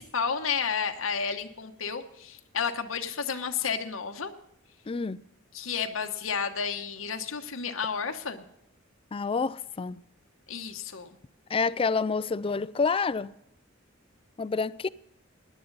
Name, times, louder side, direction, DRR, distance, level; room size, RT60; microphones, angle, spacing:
voice 1, 0.0-4.3 5.5-8.4 10.5-11.2, left 6 dB, 90° left, 1.1 m, -31 dB
voice 2, 4.9-5.2 9.1-10.0 11.5-13.3 14.4-14.9, left 4 dB, 25° left, 0.4 m, -28 dB
17.0 x 11.0 x 4.0 m
head